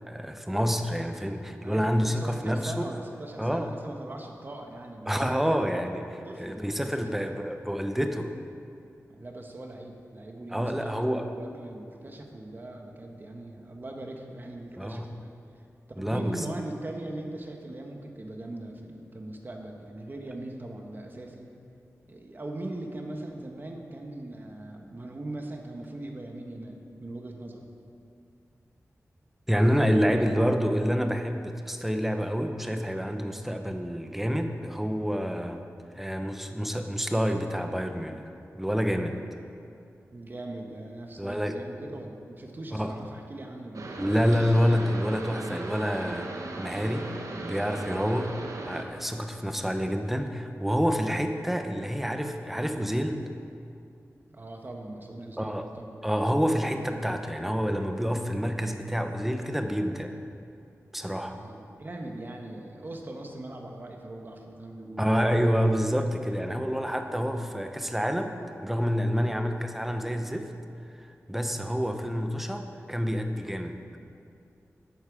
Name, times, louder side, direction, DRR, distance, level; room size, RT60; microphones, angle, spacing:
voice 1, 0.0-2.9 3.4-3.7 5.0-8.3 10.5-11.3 14.8-15.1 16.0-16.4 29.5-35.6 35.9-38.2 38.5-39.2 41.2-41.6 42.7-42.9 44.0-47.1 47.4-48.3 48.6-53.3 55.4-55.7 56.0-60.2 60.9-61.4 65.0-68.3 68.6-70.5 70.9-73.8, equal, 5° right, 6 dB, 0.8 m, -28 dB
voice 2, 1.6-5.4 6.2-7.4 9.1-15.3 16.0-21.5 22.1-27.7 30.0-30.5 40.1-44.2 54.3-56.0 61.3-65.1 66.4-66.9 67.3-67.5 69.2-69.4 71.5-71.8, right 2 dB, 35° right, 2 dB, 1.3 m, -40 dB
sound 1, 43.7-48.8, right 2 dB, 75° right, 1.0 m, -37 dB
12.0 x 8.8 x 4.9 m, 2.5 s
wide cardioid pair, 110°, 6 cm